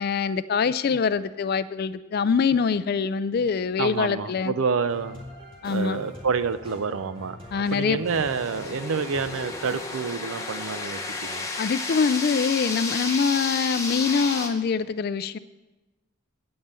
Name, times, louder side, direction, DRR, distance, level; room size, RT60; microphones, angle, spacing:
voice 1, 0.0-4.5 5.6-6.0 7.5-8.0 11.6-15.4, left 5 dB, 45° left, 15 dB, 0.3 m, -24 dB
voice 2, 3.8-5.2 5.7-11.5, right 5 dB, 70° right, 14 dB, 0.5 m, -28 dB
sound 1, 4.8-9.9, left 1 dB, 25° right, 2.2 m, -44 dB
sound 2, 8.0-14.5, left 3 dB, 15° left, 0.9 m, -32 dB
8.7 x 5.5 x 8.0 m, 1.1 s
head